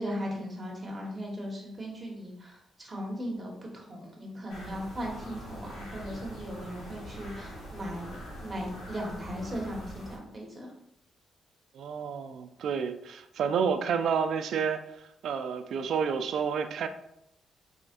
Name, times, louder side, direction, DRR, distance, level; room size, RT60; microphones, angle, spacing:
voice 1, 0.0-10.7, equal, 25° right, -2 dB, 1.4 m, -38 dB
sound 1, 4.5-10.2, equal, 90° left, 1.5 m, -43 dB
voice 2, 11.7-14.8 15.2-16.9, right 6 dB, 70° right, 8 dB, 0.4 m, -29 dB
4.1 x 3.7 x 2.6 m, 0.78 s
cardioid pair, 95°, 0 cm